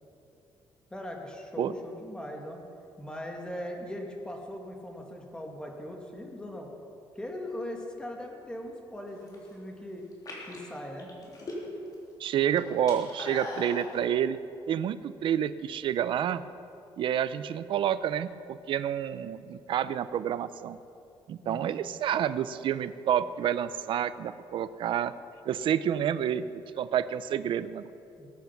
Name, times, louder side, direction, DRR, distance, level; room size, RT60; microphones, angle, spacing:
voice 1, 0.9-2.6 3.0-6.7 7.2-10.0 10.5-11.1 21.4-21.8 28.2-28.3, left 1 dB, 10° left, 1 dB, 2.2 m, -39 dB
sound 1, 9.1-9.5 10.1-11.9 12.2-13.9, left 2 dB, 40° left, 3.6 m, -40 dB
voice 2, 12.2-14.4 14.7-16.4 17.0-20.8 21.3-25.1 25.5-27.9, right 9 dB, 60° right, 13 dB, 0.6 m, -29 dB
21.0 x 9.4 x 6.0 m, 2.6 s
cardioid pair, 140°, 10 cm